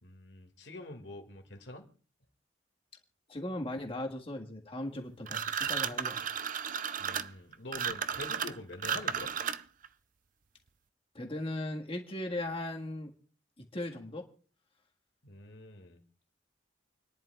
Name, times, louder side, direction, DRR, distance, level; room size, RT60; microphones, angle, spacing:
voice 1, 0.0-1.8 7.0-9.4 15.2-16.0, left 2 dB, 70° left, 3 dB, 2.2 m, -45 dB
voice 2, 3.3-6.2 11.2-13.1 13.6-14.2, left 1 dB, 30° left, 1 dB, 1.7 m, -38 dB
sound 1, 5.3-9.9, right 8 dB, 45° right, 0.5 m, -34 dB
29.0 x 10.5 x 2.4 m, 0.39 s
head